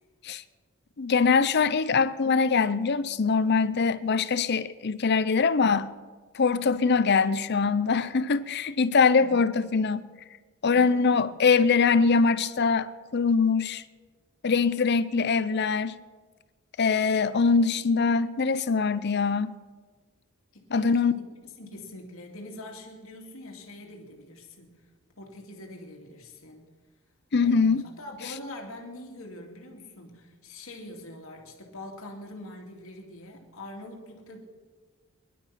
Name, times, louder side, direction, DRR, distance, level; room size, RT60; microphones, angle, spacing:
voice 1, 1.0-5.9 6.3-10.0 10.6-13.8 14.4-15.9 16.8-19.5 20.7-21.1 27.3-27.9, left 5 dB, 50° left, 0.6 m, -23 dB
voice 2, 9.2-9.8 10.7-11.4 20.5-21.3 21.6-24.8 25.2-26.7 27.4-34.4, left 1 dB, 75° left, 2.5 m, -44 dB
20.0 x 11.5 x 5.8 m
head